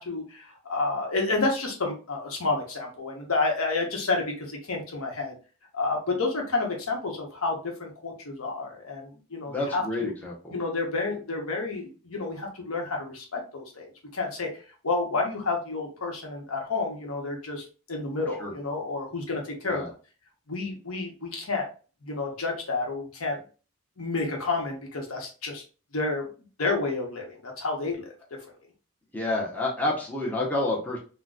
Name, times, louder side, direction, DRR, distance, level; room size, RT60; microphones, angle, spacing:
voice 1, 0.0-5.3 5.7-10.1 10.5-13.9 14.1-14.5 14.8-19.8 20.5-21.7 22.0-23.4 24.0-25.6 25.9-26.3 26.6-28.1, left 3 dB, 80° left, 1 dB, 0.9 m, -30 dB
voice 2, 9.5-10.6 18.4-18.5 19.6-19.9 29.1-31.0, left 2 dB, 10° left, -4 dB, 0.7 m, -29 dB
3.8 x 2.2 x 2.3 m, 0.36 s
head